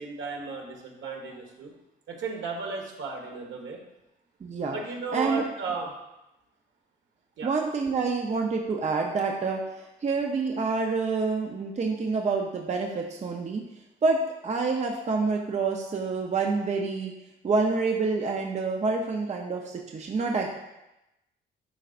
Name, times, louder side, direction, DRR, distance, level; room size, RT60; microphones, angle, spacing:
voice 1, 0.0-1.7 2.1-3.8 4.7-5.9 7.4-7.5, right 4 dB, 70° right, 0 dB, 1.4 m, -35 dB
voice 2, 4.4-4.8 5.1-5.4 7.4-13.6 14.0-17.1 17.4-20.5, right 4 dB, 35° right, 1 dB, 0.7 m, -27 dB
11.0 x 3.8 x 2.5 m, 0.92 s
cardioid pair, 90°, 20 cm